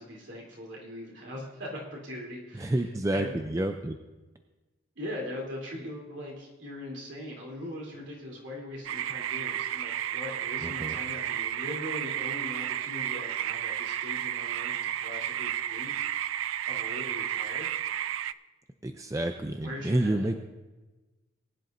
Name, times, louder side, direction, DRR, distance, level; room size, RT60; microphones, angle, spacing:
voice 1, 0.0-3.3 4.9-16.1 16.6-17.7 19.6-20.3, left 1 dB, 65° right, -3 dB, 3.2 m, -40 dB
voice 2, 2.6-4.0 10.6-11.0 18.8-20.4, right 1 dB, 15° right, 6 dB, 0.4 m, -29 dB
sound 1, 8.8-18.3, right 11 dB, 85° right, 0.3 m, -32 dB
20.0 x 10.5 x 2.6 m, 1.2 s
head